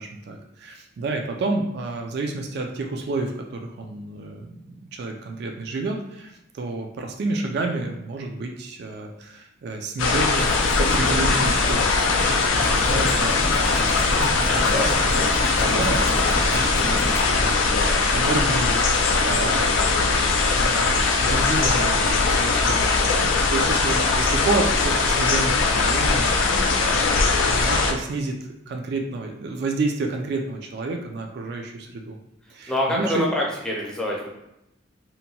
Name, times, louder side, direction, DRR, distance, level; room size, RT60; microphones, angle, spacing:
voice 1, 0.0-10.5 10.8-12.2 12.5-32.2 32.5-33.3, right 3 dB, 55° right, 3 dB, 0.3 m, -30 dB
sound 1, 10.0-27.9, left 3 dB, 85° left, 0.4 m, -20 dB
sound 2, 10.1-17.2, left 1 dB, 45° left, 0.6 m, -33 dB
voice 2, 32.7-34.4, left 1 dB, 5° left, -3 dB, 0.5 m, -26 dB
2.8 x 2.2 x 2.8 m, 0.86 s
head